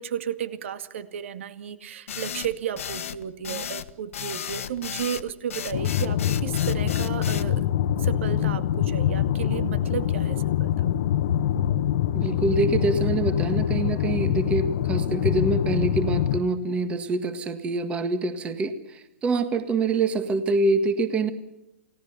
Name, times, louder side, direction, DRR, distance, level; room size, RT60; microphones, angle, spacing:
voice 1, 0.0-7.7 8.0-11.0, right 9 dB, 65° right, 10 dB, 2.1 m, -33 dB
sound 1, 2.1-7.5, left 9 dB, 80° left, 1.6 m, -34 dB
sound 2, 5.7-16.4, left 11 dB, 55° left, 1.3 m, -24 dB
voice 2, 12.1-21.3, right 3 dB, 15° right, 9 dB, 1.7 m, -25 dB
29.0 x 18.0 x 7.0 m, 0.96 s
hypercardioid pair, 150°, 7 cm